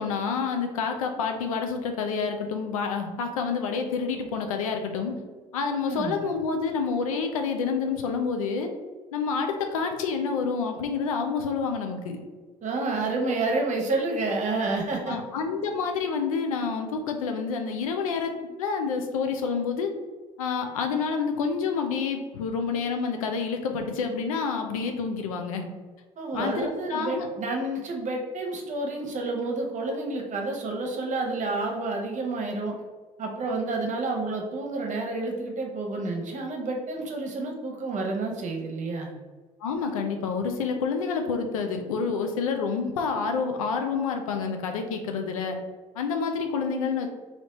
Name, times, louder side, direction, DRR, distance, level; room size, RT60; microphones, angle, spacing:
voice 1, 0.0-5.1 5.5-8.7 9.1-12.2 15.1-18.3 18.6-19.9 20.4-25.7 26.3-27.3 39.6-45.6 46.0-47.1, left 5 dB, 85° left, 4 dB, 0.4 m, -28 dB
voice 2, 5.9-6.2 12.6-15.2 26.2-32.7 33.2-39.1, right 3 dB, 45° right, 1 dB, 0.9 m, -29 dB
3.1 x 2.7 x 2.9 m, 1.3 s
hypercardioid pair, 55°, 17 cm